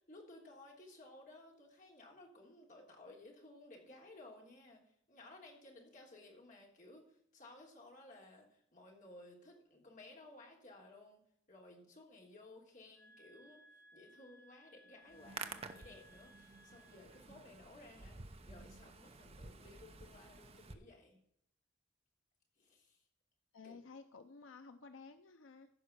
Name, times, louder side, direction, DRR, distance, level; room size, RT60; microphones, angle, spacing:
voice 1, 0.1-4.8 5.1-11.2 11.5-13.6 13.9-21.2 22.6-23.0 23.6-23.8, left 2 dB, 40° left, 0 dB, 3.3 m, -57 dB
sound 1, 12.9-17.3, equal, 10° left, 1.6 m, -64 dB
Hands, 15.1-20.7, right 4 dB, 30° right, 0.8 m, -51 dB
voice 2, 23.5-25.7, left 4 dB, 80° left, 9 dB, 0.6 m, -54 dB
15.0 x 5.6 x 6.7 m, 0.71 s
head